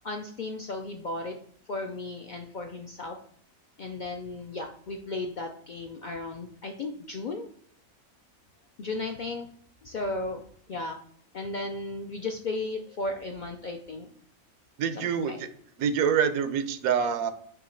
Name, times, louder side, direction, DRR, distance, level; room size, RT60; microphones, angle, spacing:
voice 1, 0.0-1.4 1.7-3.2 3.8-7.5 8.8-9.5 9.8-10.4 10.7-11.0 11.3-14.1 15.0-15.4, left 2 dB, 80° left, 4 dB, 0.4 m, -35 dB
voice 2, 14.8-15.5 15.8-17.3, right 7 dB, 90° right, 11 dB, 1.1 m, -26 dB
6.1 x 2.9 x 5.6 m, 0.62 s
omnidirectional pair, 1.4 m